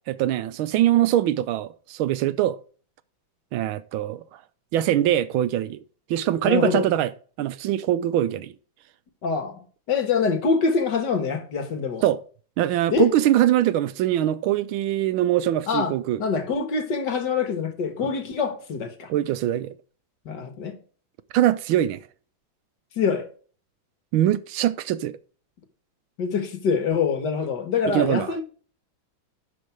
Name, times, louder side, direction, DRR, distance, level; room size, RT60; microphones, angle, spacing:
voice 1, 0.1-2.6 3.5-4.2 4.7-5.8 6.1-7.1 7.4-8.5 12.0-12.2 12.6-16.2 18.0-18.1 19.1-19.7 21.3-22.0 24.1-25.1 27.9-28.3, right 12 dB, 80° right, 1.5 m, -22 dB
voice 2, 6.4-6.9 9.2-12.0 12.9-13.1 15.7-15.9 16.2-19.1 20.3-20.8 23.0-23.3 26.2-28.4, left 5 dB, 60° left, 1.9 m, -25 dB
11.5 x 4.3 x 4.5 m
omnidirectional pair, 2.2 m